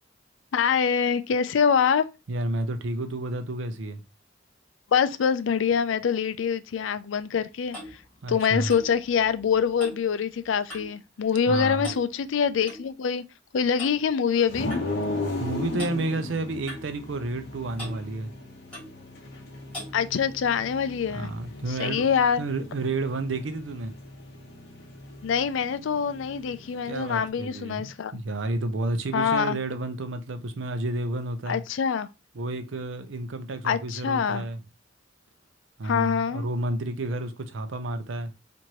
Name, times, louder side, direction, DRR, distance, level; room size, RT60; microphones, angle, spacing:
voice 1, 0.5-2.1 4.9-8.0 8.3-13.2 13.5-14.7 19.9-21.3 21.8-22.4 25.2-28.1 29.1-29.6 31.5-32.1 33.6-34.4 35.8-36.5, left 7 dB, 75° left, 0.4 m, -25 dB
voice 2, 2.3-4.0 8.2-8.7 11.5-11.9 15.4-18.4 21.1-22.1 22.4-24.0 26.9-31.6 32.3-34.6 35.8-38.3, right 2 dB, 70° right, 0.6 m, -31 dB
Clock, 7.2-11.0 11.3-11.6 11.8-12.8 13.8-14.0 14.7-14.9 15.8-16.0 16.7-17.5 17.8-18.0 18.7-19.0 19.7-20.0, left 1 dB, 5° left, 2.2 m, -42 dB
sound 1, 14.5-27.3, left 2 dB, 55° left, 0.9 m, -37 dB
4.5 x 2.6 x 2.9 m
head